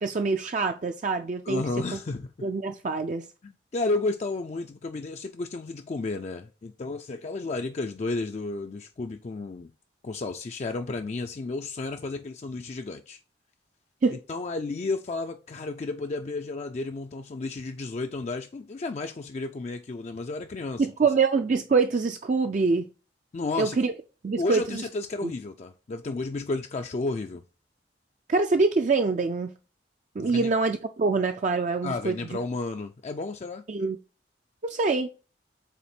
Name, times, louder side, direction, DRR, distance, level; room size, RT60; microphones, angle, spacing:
voice 1, 0.0-1.6 1.9-2.0 2.4-3.3 14.0-14.2 20.8-22.9 23.6-23.9 24.2-24.8 25.2-25.3 28.3-29.5 30.2-32.4 33.7-34.0 34.6-35.1, right 4 dB, 40° right, 0.4 m, -25 dB
voice 2, 1.4-2.5 3.4-9.7 10.0-13.2 14.1-20.9 23.3-23.8 24.4-27.4 30.2-30.5 31.8-33.6, left 3 dB, 35° left, 0.3 m, -32 dB
5.8 x 4.0 x 4.3 m
head